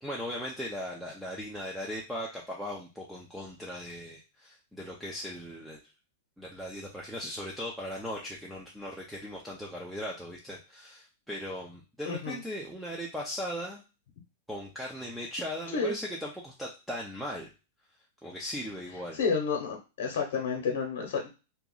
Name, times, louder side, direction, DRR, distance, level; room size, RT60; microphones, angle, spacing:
voice 1, 0.0-5.8 6.4-13.8 14.5-17.5 18.2-19.2, equal, ahead, -3 dB, 0.5 m, -38 dB
voice 2, 12.0-12.4 15.7-16.0 19.1-21.3, left 5 dB, 65° left, 1 dB, 0.9 m, -30 dB
2.9 x 2.4 x 3.8 m, 0.30 s
supercardioid pair, 160°, 0 cm